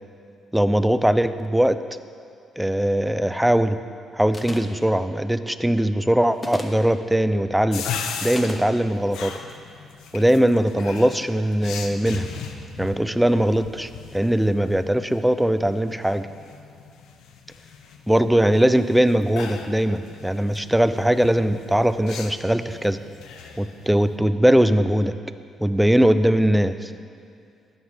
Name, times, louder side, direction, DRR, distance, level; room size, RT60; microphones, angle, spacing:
voice 1, 0.5-1.8 2.6-3.8 4.1-7.9 8.2-9.4 10.1-12.3 12.8-16.3 18.1-23.0 23.6-25.2 25.6-26.9, right 1 dB, 5° right, 11 dB, 0.4 m, -20 dB
sound 1, 4.3-4.8 6.3-6.8 8.3-8.7, left 2 dB, 25° left, 0.8 m, -35 dB
Bathroom wash face, 7.7-24.2, left 6 dB, 85° left, 0.6 m, -38 dB
11.5 x 7.4 x 3.4 m, 2.4 s
cardioid pair, 90°, 0 cm